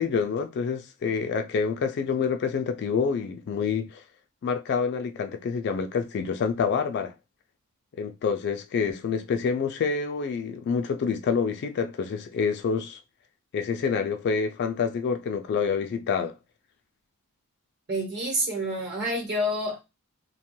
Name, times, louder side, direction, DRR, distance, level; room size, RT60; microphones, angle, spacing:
voice 1, 0.0-4.0 4.4-7.1 8.0-13.0 13.5-16.3, left 6 dB, 50° left, 0.3 m, -27 dB
voice 2, 17.9-19.8, equal, 50° right, 1.0 m, -28 dB
2.8 x 2.2 x 3.0 m
head